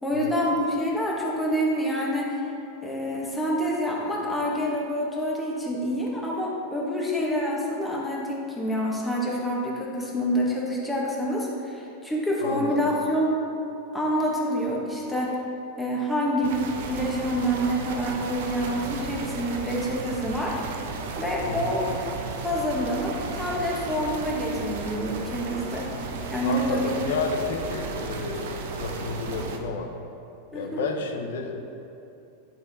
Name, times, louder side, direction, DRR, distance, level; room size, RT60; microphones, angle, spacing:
voice 1, 0.0-2.4 2.8-13.4 13.9-15.4 15.8-16.5 16.8-20.6 21.2-21.8 22.4-27.0 30.5-30.9, equal, 5° left, -4 dB, 1.3 m, -27 dB
voice 2, 12.4-12.9 21.4-21.7 26.4-29.9 30.5-31.6, left 4 dB, 80° left, 3 dB, 0.9 m, -31 dB
sound 1, 16.4-29.6, right 4 dB, 70° right, 0.8 m, -34 dB
10.0 x 4.4 x 4.2 m, 2.9 s
supercardioid pair, 145°, 0 cm